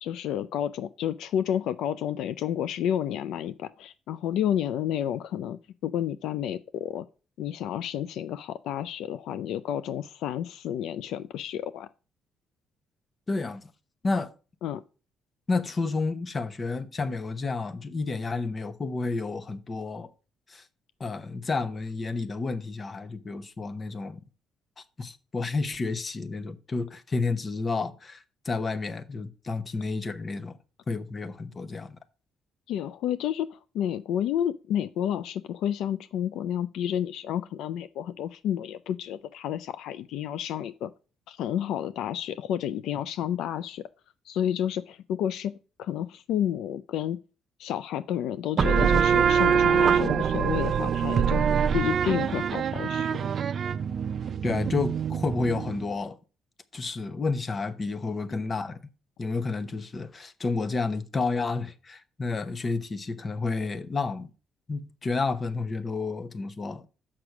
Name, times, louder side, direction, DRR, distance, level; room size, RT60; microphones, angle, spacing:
voice 1, 0.0-7.1 7.4-11.9 14.6-14.8 32.7-40.9 41.3-43.8 44.3-45.5 45.8-47.2 47.6-51.4 51.7-53.2, left 10 dB, 80° left, 0.4 m, -30 dB
voice 2, 13.3-13.7 14.0-14.3 15.5-20.1 20.5-20.6 21.0-24.2 25.0-30.6 30.9-32.0 54.4-56.2 56.7-58.8 59.2-64.3 64.7-66.9, left 3 dB, 35° left, 0.9 m, -30 dB
sound 1, 48.6-55.9, right 7 dB, 50° right, 0.5 m, -24 dB
6.5 x 5.9 x 5.9 m
cardioid pair, 90°, 0 cm